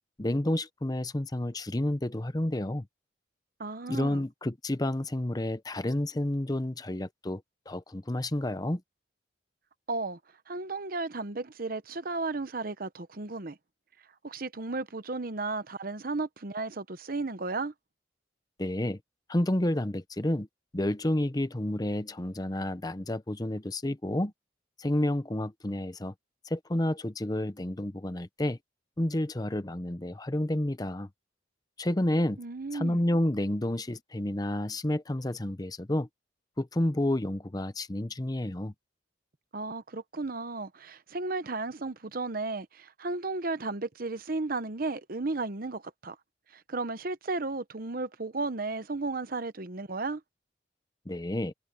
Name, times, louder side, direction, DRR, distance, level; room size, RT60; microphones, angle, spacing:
voice 1, 0.2-2.9 3.9-8.8 18.6-19.0 19.3-20.5 20.7-24.3 24.8-26.1 26.4-28.6 29.0-31.1 31.8-32.4 32.7-36.1 36.6-38.7 51.1-51.5, left 1 dB, 20° left, 0.8 m, -30 dB
voice 2, 3.6-4.2 9.9-10.2 10.5-13.6 14.2-17.7 32.4-33.0 39.5-46.2 46.5-50.2, right 3 dB, 50° right, 0.9 m, -34 dB
head